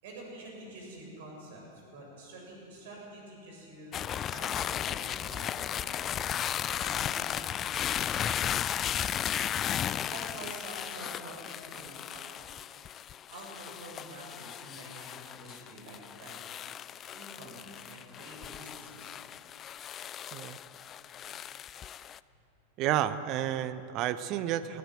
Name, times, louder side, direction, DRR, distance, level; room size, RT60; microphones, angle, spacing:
voice 1, 0.0-6.1 6.8-8.4 10.1-12.3 13.3-16.3 17.1-19.1, right 1 dB, 55° right, -1 dB, 7.3 m, -47 dB
sound 1, 3.9-22.2, left 10 dB, 30° left, 0.4 m, -35 dB
voice 2, 22.8-24.8, right 12 dB, 40° right, 13 dB, 0.9 m, -31 dB
19.0 x 16.0 x 9.4 m, 2.8 s
figure-of-eight pair, 90°, 0 cm